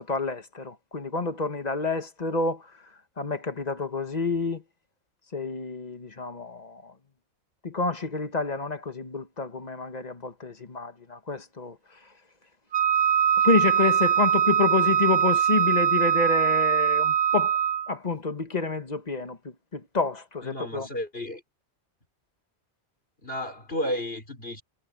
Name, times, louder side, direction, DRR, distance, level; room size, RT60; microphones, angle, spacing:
voice 1, 0.0-2.6 3.2-4.6 5.3-6.9 7.6-11.7 13.4-17.5 17.9-19.4 19.7-20.9, left 4 dB, 35° left, 1.5 m, -28 dB
Wind instrument woodwind instrument, 12.7-17.9, right 9 dB, 45° right, 0.7 m, -22 dB
voice 2, 20.4-21.4 23.2-24.6, left 1 dB, 55° left, 5.2 m, -32 dB
omnidirectional pair, 1.2 m